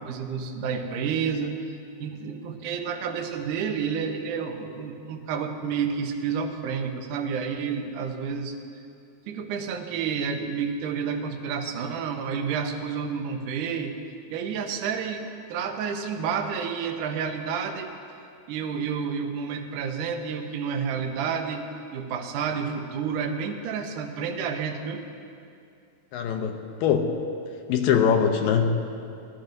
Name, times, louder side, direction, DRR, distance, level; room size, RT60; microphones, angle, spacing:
voice 1, 0.0-1.6 2.0-8.5 9.3-14.0 14.3-17.9 18.5-21.6 21.9-25.0, right 6 dB, 75° right, 4 dB, 2.1 m, -30 dB
voice 2, 26.1-27.1 27.7-28.8, left 7 dB, 80° left, 4 dB, 2.3 m, -22 dB
18.5 x 13.5 x 2.6 m, 2.5 s
omnidirectional pair, 4.3 m